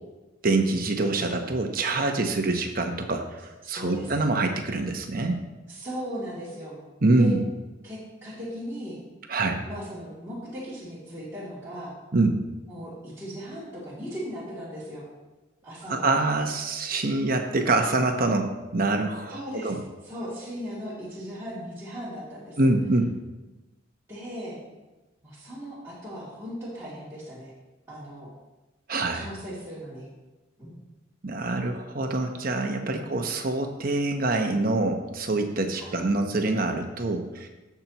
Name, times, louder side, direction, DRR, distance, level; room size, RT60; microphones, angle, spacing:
voice 1, 0.4-5.4 7.0-7.4 9.3-9.7 12.1-12.4 15.9-19.8 22.6-23.1 28.9-29.3 31.2-37.5, right 2 dB, 45° right, 4 dB, 0.9 m, -25 dB
voice 2, 3.6-4.1 5.7-6.8 7.2-7.3 7.8-9.0 9.6-11.9 12.7-15.0 15.6-16.4 19.3-22.6 24.1-24.6 25.2-27.5 27.9-28.3 29.1-30.1 30.6-30.7 32.8-33.3 35.8-36.0, equal, 15° right, -11 dB, 2.7 m, -38 dB
16.5 x 5.8 x 3.0 m, 1.1 s
head